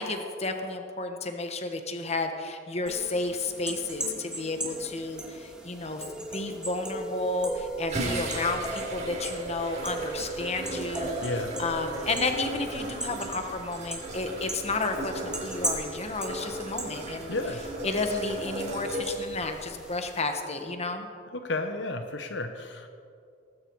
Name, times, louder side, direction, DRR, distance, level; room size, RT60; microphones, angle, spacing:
voice 1, 0.0-11.3 11.6-17.4 17.8-21.1, left 3 dB, 35° left, 6 dB, 1.4 m, -32 dB
sound 1, 2.9-20.2, right 1 dB, 5° right, 2.1 m, -38 dB
sound 2, 7.4-19.8, right 1 dB, 35° right, 4.6 m, -37 dB
voice 2, 11.2-11.6 17.3-17.6 21.3-22.9, left 2 dB, 65° left, 7 dB, 1.0 m, -32 dB
19.0 x 15.5 x 4.8 m, 2.4 s
head